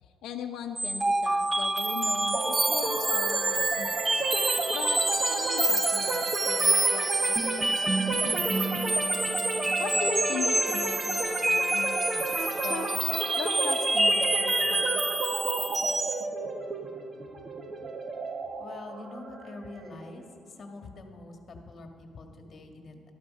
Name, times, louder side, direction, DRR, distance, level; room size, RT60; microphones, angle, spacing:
voice 1, 0.0-4.2 4.7-8.7 9.8-13.0 13.4-15.0, left 7 dB, 85° left, 3 dB, 0.7 m, -39 dB
sound 1, 0.8-16.2, right 2 dB, 15° right, 0.5 m, -27 dB
sound 2, 2.3-20.1, right 3 dB, 35° right, 1.2 m, -32 dB
voice 2, 18.6-20.2 20.6-23.0, left 2 dB, 40° left, 4 dB, 1.9 m, -44 dB
12.5 x 12.5 x 5.4 m, 2.4 s
cardioid pair, 125°, 0 cm